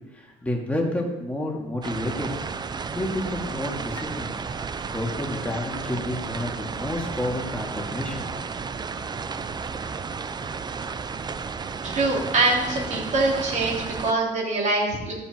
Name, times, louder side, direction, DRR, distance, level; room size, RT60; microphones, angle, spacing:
voice 1, 0.1-2.3 2.9-4.3 4.9-8.3, left 1 dB, 10° left, -1 dB, 2.5 m, -30 dB
sound 1, 1.8-14.1, right 5 dB, 25° right, 0.6 m, -33 dB
voice 2, 11.8-15.1, right 2 dB, 45° right, -2 dB, 3.7 m, -24 dB
13.5 x 7.2 x 4.6 m, 1.1 s
cardioid pair, 110°, 17 cm